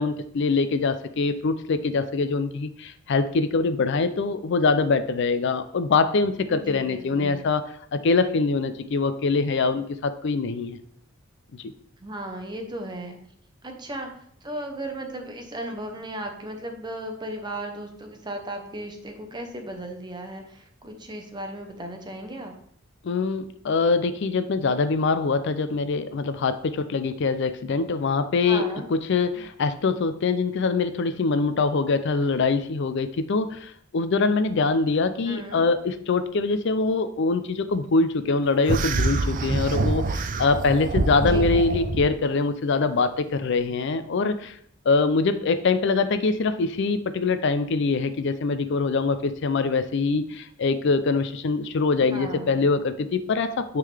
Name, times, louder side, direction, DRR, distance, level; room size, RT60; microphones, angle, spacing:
voice 1, 0.0-7.6 7.9-10.8 11.6-11.7 23.0-28.7 28.9-44.6 44.9-53.8, left 4 dB, 60° left, 11 dB, 0.4 m, -24 dB
voice 2, 6.5-7.4 12.0-13.2 13.6-14.1 14.4-22.5 28.4-28.9 35.3-35.6 41.2-41.6 52.0-52.6, right 1 dB, 20° right, 4 dB, 0.9 m, -36 dB
sound 1, 38.7-42.1, right 3 dB, 40° right, 0.4 m, -25 dB
9.3 x 3.8 x 3.4 m, 0.66 s
head